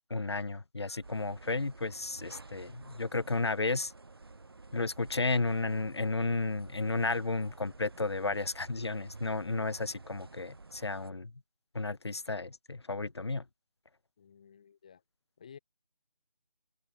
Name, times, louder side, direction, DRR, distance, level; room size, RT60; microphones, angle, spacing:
voice 1, 0.1-3.9 4.7-11.3 11.7-13.4, left 3 dB, 40° left, 0.5 m, -33 dB
sound 1, 1.0-11.1, right 3 dB, 35° right, 0.7 m, -51 dB
voice 2, 14.2-15.0 15.4-15.6, left 7 dB, 10° left, 1.0 m, -53 dB
open air
figure-of-eight pair, 160°, 20 cm